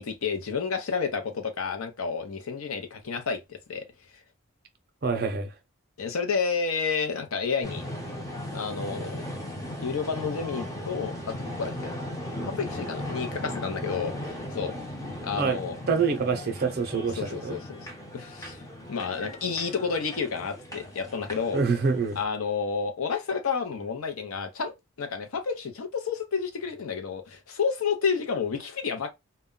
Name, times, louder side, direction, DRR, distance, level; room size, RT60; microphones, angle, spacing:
voice 1, 0.0-3.9 6.0-7.8 8.5-9.2 9.8-12.0 12.4-14.7 15.2-15.8 17.2-17.9 18.1-18.6 18.9-21.6 22.2-24.7 25.0-29.1, left 5 dB, 85° left, 0.6 m, -30 dB
voice 2, 5.0-5.5 15.4-15.6 15.9-17.6 21.5-22.2, right 5 dB, 45° right, 0.5 m, -26 dB
sound 1, 7.6-22.2, left 1 dB, 15° left, 0.6 m, -37 dB
2.2 x 2.1 x 3.6 m
head